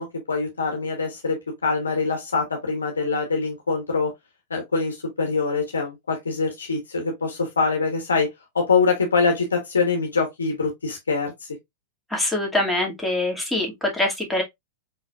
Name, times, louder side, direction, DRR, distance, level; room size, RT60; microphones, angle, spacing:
voice 1, 0.0-4.1 4.5-8.3 8.5-11.5, left 4 dB, 85° left, 1.2 m, -24 dB
voice 2, 12.1-14.4, left 1 dB, ahead, 2.2 m, -24 dB
5.1 x 3.8 x 2.4 m
hypercardioid pair, 105°, 0 cm